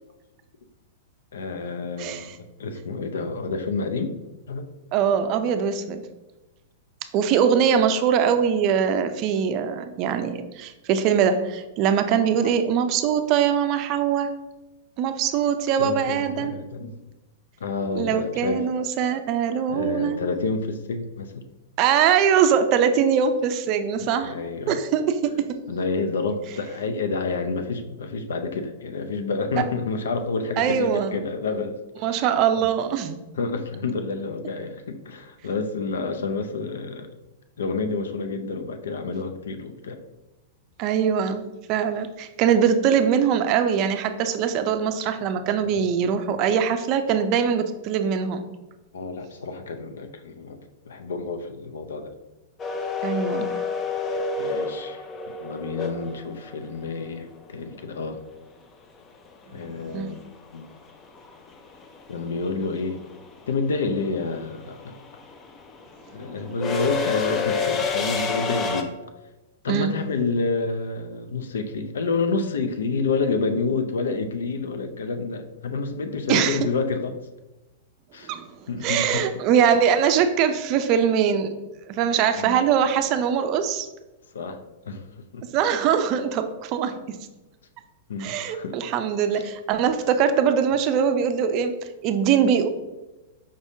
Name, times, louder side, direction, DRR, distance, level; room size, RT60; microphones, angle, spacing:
voice 1, 1.3-4.2 4.5-4.7 12.4-12.6 15.8-16.9 17.6-18.7 19.7-21.4 24.2-24.8 25.7-32.1 32.6-32.7 33.3-37.1 37.6-40.0 45.6-45.9 48.9-50.6 50.9-52.1 54.4-55.0 55.4-58.2 59.5-60.2 60.5-60.7 62.1-63.0 63.5-65.0 66.1-68.9 69.6-77.2 78.1-78.3 78.7-79.3 82.4-82.6 84.3-85.0 85.3-85.5 88.1-88.8 89.3-89.5, left 4 dB, 85° left, 8 dB, 0.5 m, -29 dB
voice 2, 2.0-2.4 4.9-6.0 7.1-14.3 15.0-16.5 17.9-20.2 21.8-24.3 24.7-25.6 30.6-31.2 32.0-33.2 40.8-48.4 53.0-53.5 59.9-60.1 69.7-69.9 76.3-76.7 78.3-78.5 78.8-81.5 81.9-83.9 85.5-87.2 88.2-91.7 92.0-92.7, right 7 dB, 40° right, 8 dB, 0.4 m, -22 dB
sound 1, 52.6-56.7 59.1-59.2 60.5-60.8 61.0-68.8, left 5 dB, 25° left, 0.5 m, -28 dB
5.1 x 3.4 x 2.7 m, 1.1 s
hypercardioid pair, 135°, 0 cm